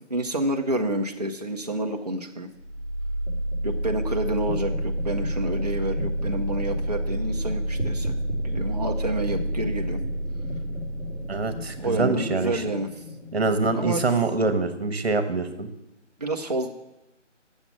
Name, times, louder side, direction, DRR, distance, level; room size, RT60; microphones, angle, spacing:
voice 1, 0.1-2.5 3.6-8.2 8.4-10.0 11.8-12.9 13.3-13.4 13.7-14.0 16.2-16.7, right 1 dB, 35° right, 2 dB, 0.5 m, -29 dB
sound 1, 2.6-14.5, right 1 dB, 75° left, 2.8 m, -29 dB
voice 2, 11.3-12.6 13.3-15.7, right 3 dB, 55° right, 10 dB, 1.1 m, -25 dB
7.1 x 6.7 x 7.2 m, 0.91 s
figure-of-eight pair, 155°, 37 cm